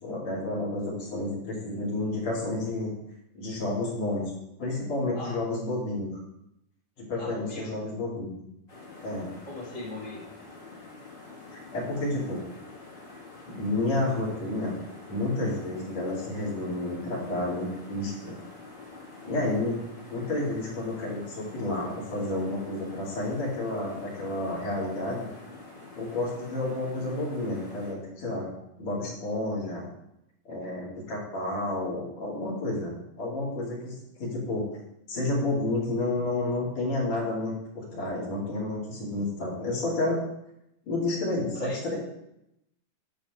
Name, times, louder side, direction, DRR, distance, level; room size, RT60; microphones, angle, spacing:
voice 1, 0.0-3.0 3.4-4.2 4.6-6.1 7.0-8.4 9.0-9.3 11.7-12.4 13.5-14.8 15.1-18.4 19.2-19.8 20.1-25.3 26.0-28.5 28.8-29.9 30.5-34.6 35.1-40.2 40.8-42.0, left 2 dB, 50° left, -5 dB, 3.6 m, -30 dB
voice 2, 7.1-7.7 9.4-10.2 41.5-41.8, left 1 dB, 15° right, -6 dB, 1.1 m, -39 dB
sound 1, 8.7-27.9, left 3 dB, 25° left, 1.2 m, -47 dB
10.0 x 4.1 x 6.7 m, 0.84 s
omnidirectional pair, 4.0 m